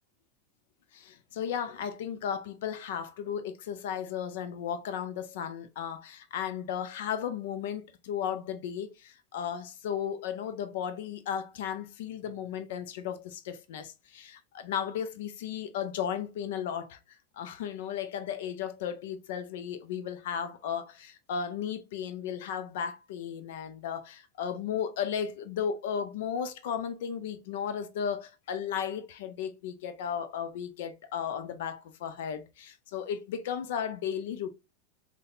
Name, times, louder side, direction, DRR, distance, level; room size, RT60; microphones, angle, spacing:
voice 1, 0.9-17.0 17.4-34.5, left 8 dB, 70° left, 0.5 m, -35 dB
3.9 x 2.2 x 2.5 m
hypercardioid pair, 95°, 0 cm